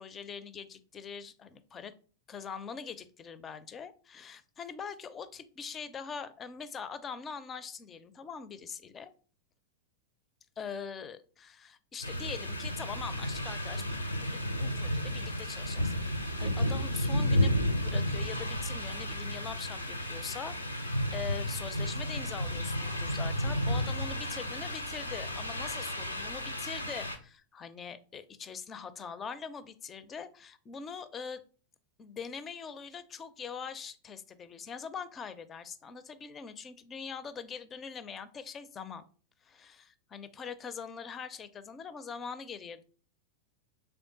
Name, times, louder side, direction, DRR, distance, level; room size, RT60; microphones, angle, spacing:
voice 1, 0.0-1.9 2.3-9.1 10.6-13.8 14.2-31.4 32.0-39.0 39.4-42.8, left 6 dB, 25° left, 13 dB, 0.4 m, -43 dB
sound 1, 12.0-27.2, left 1 dB, 85° left, 0.6 m, -32 dB
3.5 x 3.4 x 3.9 m, 0.39 s
figure-of-eight pair, 90°, 0 cm